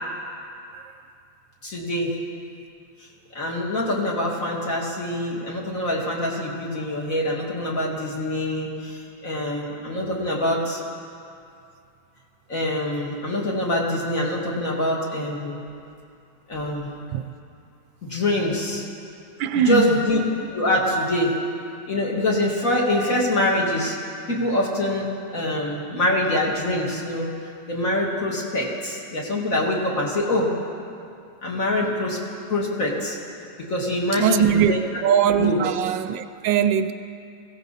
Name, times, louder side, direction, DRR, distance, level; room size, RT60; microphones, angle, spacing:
voice 1, 1.6-2.1 3.3-10.8 12.5-15.6 16.5-16.9 18.0-18.8 19.5-20.2 20.5-21.4 21.9-24.0 24.3-27.3 27.7-30.5 31.4-32.2 32.5-33.2 33.7-34.8 35.4-35.6, left 1 dB, 45° left, -3 dB, 2.5 m, -24 dB
voice 2, 19.4-19.9 34.2-34.7 35.0-36.9, right 8 dB, 80° right, 10 dB, 1.3 m, -21 dB
21.0 x 16.5 x 4.1 m, 2.4 s
omnidirectional pair, 2.1 m